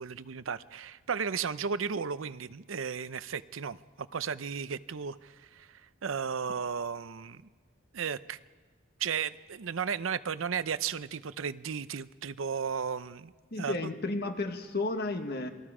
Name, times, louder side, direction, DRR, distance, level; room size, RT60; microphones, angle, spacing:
voice 1, 0.0-7.4 7.9-8.4 9.0-13.3 13.6-13.7, right 6 dB, 90° right, 14 dB, 0.6 m, -34 dB
voice 2, 13.5-15.5, left 2 dB, 55° left, 6 dB, 1.5 m, -32 dB
27.5 x 20.5 x 5.0 m, 1.5 s
head